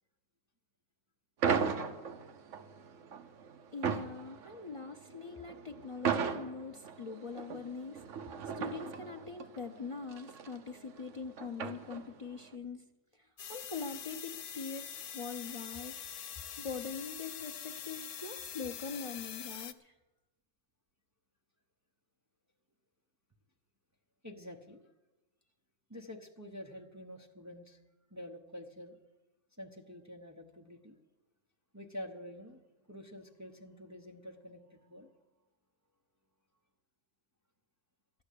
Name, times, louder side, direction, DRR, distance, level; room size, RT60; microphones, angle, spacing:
sound 1, 1.4-12.3, right 6 dB, 60° right, 1.1 m, -37 dB
voice 1, 3.7-8.0 8.6-12.9 13.1-15.9 16.6-19.9, left 5 dB, 60° left, 8 dB, 0.3 m, -43 dB
sound 2, 13.4-19.7, left 8 dB, 85° left, 1.1 m, -44 dB
voice 2, 24.2-24.8 25.9-27.8 28.1-29.0 29.6-31.0 31.7-32.6 32.9-35.2, left 1 dB, 15° right, 2 dB, 0.7 m, -48 dB
12.5 x 9.5 x 8.3 m, 1.1 s
omnidirectional pair, 1.5 m